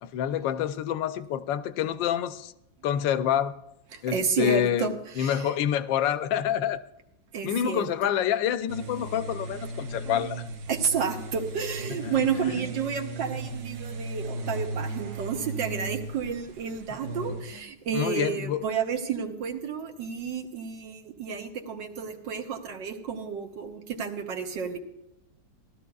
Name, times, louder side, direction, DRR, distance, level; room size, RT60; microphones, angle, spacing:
voice 1, 0.0-2.5 2.8-3.5 4.0-6.8 7.4-10.4 12.0-12.2 16.9-17.0 17.9-18.7, left 10 dB, 80° left, 13 dB, 1.3 m, -27 dB
voice 2, 4.1-5.5 7.3-8.1 10.7-24.8, right 6 dB, 75° right, 4 dB, 1.8 m, -31 dB
sound 1, 8.7-17.6, right 2 dB, 55° right, 0.9 m, -36 dB
18.0 x 13.0 x 2.3 m, 0.90 s
omnidirectional pair, 2.0 m